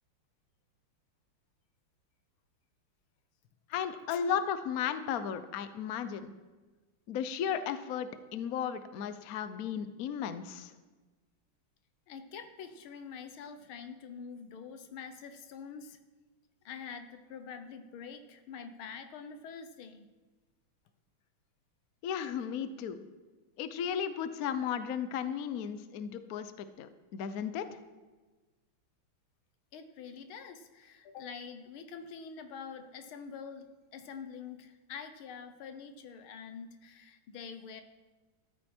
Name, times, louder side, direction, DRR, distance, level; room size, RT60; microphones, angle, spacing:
voice 1, 3.7-6.3 7.1-10.7 22.0-23.0 23.6-27.6, left 8 dB, 60° left, 11 dB, 0.9 m, -35 dB
voice 2, 12.1-16.0 16.7-20.1 29.7-33.7 33.9-37.8, left 6 dB, 80° left, 8 dB, 1.8 m, -46 dB
13.5 x 13.0 x 4.4 m, 1.3 s
omnidirectional pair, 2.3 m